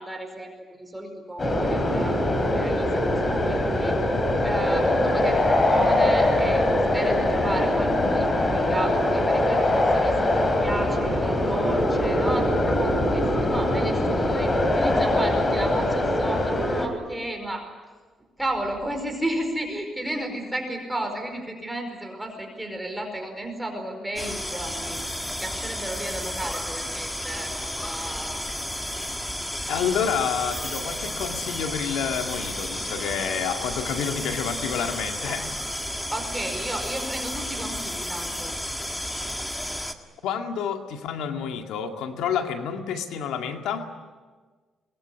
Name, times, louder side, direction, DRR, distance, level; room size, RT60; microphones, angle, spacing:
voice 1, 0.0-2.2 2.5-4.0 4.4-6.7 6.9-17.7 18.4-25.0 25.4-28.4 35.2-35.5 36.1-38.5, right 1 dB, 10° right, 4 dB, 5.0 m, -33 dB
sound 1, 1.4-16.9, left 1 dB, 30° left, 4.2 m, -22 dB
sound 2, 24.2-39.9, left 1 dB, 10° left, 1.9 m, -32 dB
voice 2, 29.7-35.5 40.2-43.9, left 7 dB, 90° left, 5 dB, 2.2 m, -29 dB
23.0 x 21.5 x 9.9 m, 1.4 s
cardioid pair, 90°, 0 cm